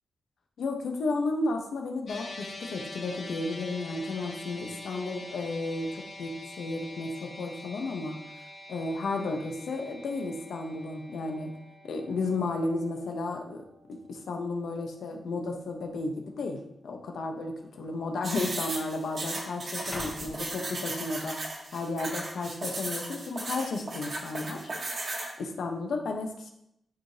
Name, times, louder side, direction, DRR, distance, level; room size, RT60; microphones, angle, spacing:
voice 1, 0.6-8.2 8.7-11.5 11.8-13.6 13.9-21.4 21.7-24.7 25.4-26.5, left 3 dB, 80° left, 3 dB, 1.1 m, -33 dB
sound 1, 2.1-14.5, left 2 dB, 65° left, 2.0 m, -45 dB
sound 2, 12.8-13.2 13.9-14.0 14.8-15.3 15.5-15.7 16.5-16.7 17.7-17.8 18.0-21.2 21.7-22.1, left 2 dB, 35° left, 1.0 m, -48 dB
sound 3, 18.2-25.3, right 2 dB, 45° right, 1.5 m, -36 dB
11.0 x 4.9 x 2.9 m, 0.77 s
wide cardioid pair, 145°, 0 cm